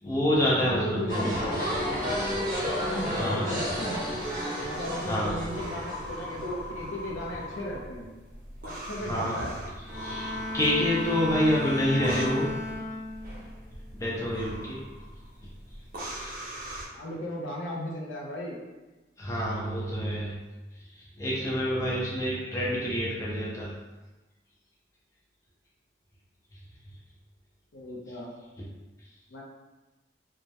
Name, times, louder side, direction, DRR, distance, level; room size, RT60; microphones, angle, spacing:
voice 1, 0.0-1.3 3.2-3.6 5.0-5.5 9.0-9.3 9.9-12.4 14.0-14.8 16.1-16.4 19.2-20.3 20.8-23.7, equal, 15° left, -6 dB, 0.4 m, -28 dB
voice 2, 0.6-2.1 2.6-4.1 4.6-8.1 8.6-9.6 16.9-18.6 27.7-28.3 29.3-29.4, left 1 dB, 90° left, -1 dB, 0.5 m, -36 dB
sound 1, 1.1-6.5, equal, 20° right, 0.9 m, -31 dB
sound 2, 1.3-16.9, equal, 45° right, 0.4 m, -41 dB
Bowed string instrument, 9.8-13.4 13.9-14.3, left 1 dB, 55° left, 0.9 m, -35 dB
2.2 x 2.0 x 2.7 m, 1.1 s
head